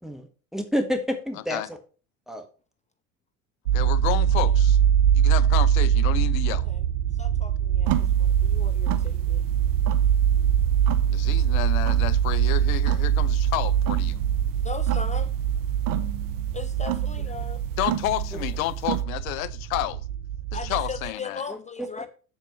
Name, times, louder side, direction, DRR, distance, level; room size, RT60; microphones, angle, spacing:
voice 1, 0.0-1.8 2.3-2.4 21.5-21.9, equal, ahead, 1.5 m, -29 dB
voice 2, 3.7-4.8 5.1-6.7 11.1-14.2 17.8-20.0 20.5-21.4, left 16 dB, 75° left, 0.7 m, -30 dB
sound 1, 3.7-21.1, right 9 dB, 80° right, 0.9 m, -23 dB
voice 3, 6.5-6.8 7.2-9.4 14.6-15.3 16.5-17.6 20.5-22.1, left 6 dB, 20° left, 0.4 m, -38 dB
sound 2, 7.9-19.0, right 13 dB, 50° right, 0.9 m, -34 dB
7.3 x 4.6 x 6.0 m
hypercardioid pair, 70°, 43 cm